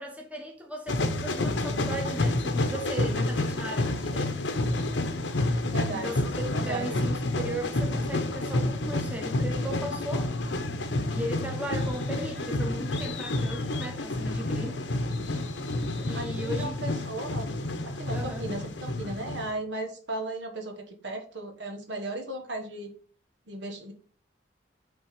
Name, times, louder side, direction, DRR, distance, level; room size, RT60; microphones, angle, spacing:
voice 1, 0.0-4.3 5.9-10.3 11.1-14.9 16.0-16.8 18.1-18.5, right 1 dB, 10° right, 1.1 m, -37 dB
sound 1, 0.9-19.5, left 2 dB, 75° left, 0.8 m, -29 dB
voice 2, 3.8-4.3 5.7-6.1 6.5-7.0 16.1-17.5 17.8-22.9 23.5-23.9, right 2 dB, 75° right, 1.2 m, -36 dB
6.1 x 3.7 x 5.0 m
head